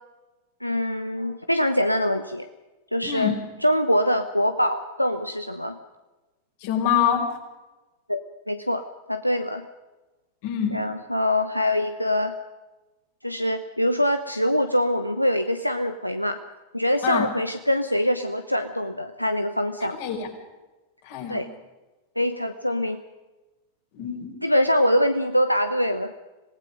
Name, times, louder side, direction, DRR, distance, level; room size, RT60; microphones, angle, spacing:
voice 1, 0.6-2.5 2.9-3.3 3.6-5.7 8.1-8.2 8.5-9.6 10.7-12.3 13.2-16.4 16.7-20.0 21.3-21.5 22.2-23.0 24.4-26.1, left 1 dB, 90° left, 8 dB, 0.9 m, -24 dB
voice 2, 3.0-3.4 6.6-7.3 10.4-10.8 17.0-17.3 19.9-20.3 21.0-21.4 23.9-24.3, left 8 dB, 50° left, 3 dB, 4.9 m, -25 dB
26.5 x 18.5 x 5.2 m, 1.1 s
figure-of-eight pair, 90°, 0 cm